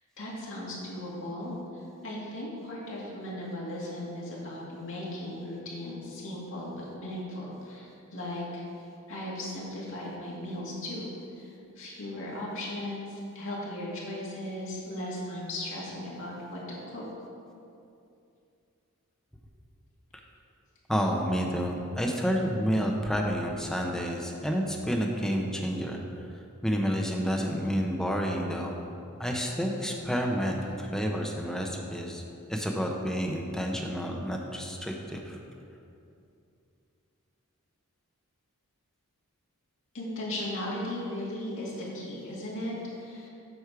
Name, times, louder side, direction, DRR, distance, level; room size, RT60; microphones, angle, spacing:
voice 1, 0.2-8.6 9.1-11.1 11.4-17.0 39.9-43.3, left 1 dB, 60° left, -5 dB, 2.2 m, -37 dB
voice 2, 20.9-26.0 26.6-28.8 29.2-32.2 32.5-35.4, equal, ahead, 0 dB, 0.7 m, -29 dB
8.1 x 6.2 x 4.8 m, 2.6 s
head